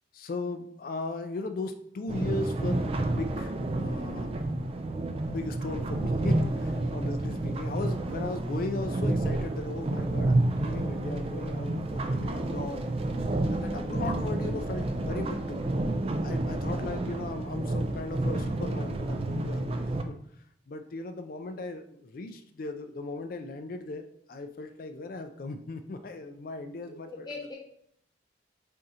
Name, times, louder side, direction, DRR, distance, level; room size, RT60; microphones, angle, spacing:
voice 1, 0.1-4.7 5.1-12.9 13.5-15.7 16.2-20.1 20.7-27.3, left 2 dB, 50° left, 8 dB, 0.3 m, -37 dB
sound 1, 2.1-20.0, right 2 dB, 30° right, 0.3 m, -30 dB
voice 2, 26.9-27.5, left 3 dB, 20° left, -3 dB, 1.1 m, -42 dB
4.4 x 2.7 x 3.7 m, 0.71 s
head